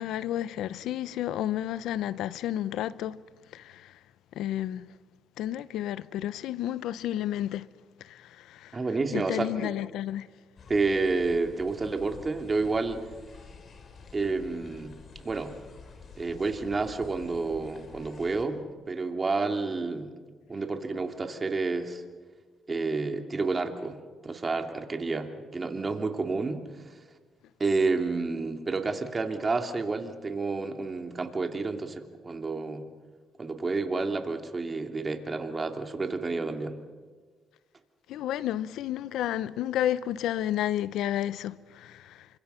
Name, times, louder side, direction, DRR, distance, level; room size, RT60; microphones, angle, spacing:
voice 1, 0.0-3.2 3.5-3.9 4.4-4.9 5.4-7.7 8.0-8.8 9.1-10.3 38.1-42.3, left 12 dB, 85° left, 0.7 m, -31 dB
voice 2, 8.7-9.7 10.7-13.0 14.1-15.0 15.2-15.5 16.2-20.1 20.5-22.0 22.7-24.0 24.2-27.0 27.6-32.9 33.4-36.8, right 3 dB, 30° right, 2.8 m, -30 dB
sound 1, 10.6-18.4, left 5 dB, 50° left, 4.0 m, -49 dB
29.5 x 25.5 x 5.7 m
cardioid pair, 90°, 0 cm